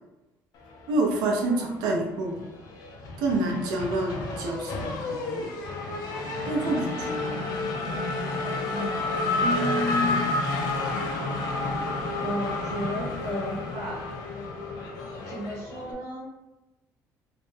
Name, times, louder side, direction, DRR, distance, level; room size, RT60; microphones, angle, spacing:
Race car auto racing / Accelerating revving vroom, 0.9-1.9 2.2-15.9, left 2 dB, 65° left, 0.5 m, -30 dB
voice 1, 0.9-2.4 3.2-5.5 6.5-7.4, right 2 dB, 80° right, 1 dB, 0.6 m, -28 dB
voice 2, 9.4-10.3 12.2-14.2 15.3-16.3, equal, 65° right, -3 dB, 1.1 m, -32 dB
2.5 x 2.1 x 3.1 m, 0.97 s
cardioid pair, 145°, 7 cm